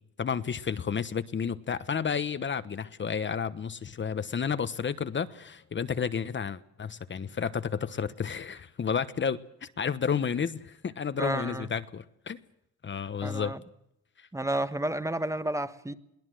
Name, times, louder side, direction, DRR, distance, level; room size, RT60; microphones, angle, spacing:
voice 1, 0.2-12.4 12.8-13.5 14.2-14.3, left 6 dB, 40° left, 1.1 m, -31 dB
voice 2, 11.2-11.7 13.2-13.6 14.3-15.9, right 1 dB, 10° right, 1.3 m, -31 dB
22.5 x 18.0 x 7.7 m
cardioid pair, 90°, 30 cm